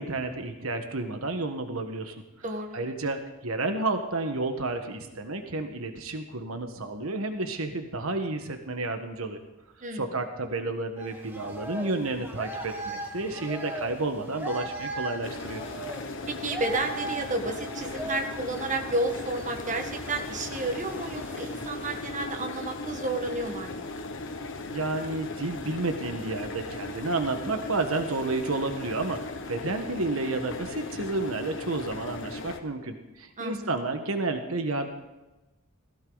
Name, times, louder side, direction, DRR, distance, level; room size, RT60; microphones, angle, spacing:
voice 1, 0.0-2.1 2.7-9.4 9.9-15.6 24.7-34.9, right 2 dB, 80° right, 6 dB, 1.4 m, -31 dB
voice 2, 2.4-2.8 9.8-10.1 16.3-23.8 33.4-33.7, right 2 dB, 40° right, 4 dB, 1.5 m, -31 dB
sound 1, 11.0-22.1, right 1 dB, 10° right, 1.9 m, -39 dB
sound 2, 15.2-32.6, left 2 dB, 65° left, 1.4 m, -38 dB
17.5 x 16.0 x 4.0 m, 1.0 s
head